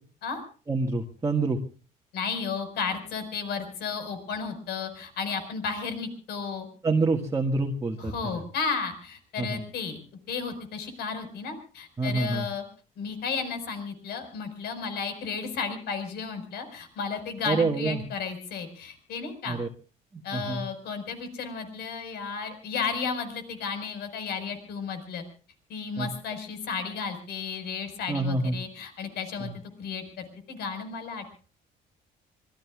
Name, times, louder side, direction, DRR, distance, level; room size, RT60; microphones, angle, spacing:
voice 1, 0.7-1.6 6.8-8.1 9.4-9.6 12.0-12.5 17.4-18.0 19.5-19.7 20.1-20.6 26.0-26.1 28.1-28.6 29.4-29.6, right 3 dB, 20° right, 1 dB, 1.7 m, -27 dB
voice 2, 2.1-6.7 8.0-10.0 10.3-12.6 13.0-19.6 20.2-25.2 25.7-29.5 29.8-31.4, left 5 dB, 75° left, 8 dB, 5.1 m, -33 dB
26.0 x 21.0 x 2.4 m, 0.40 s
cardioid pair, 110°, 17 cm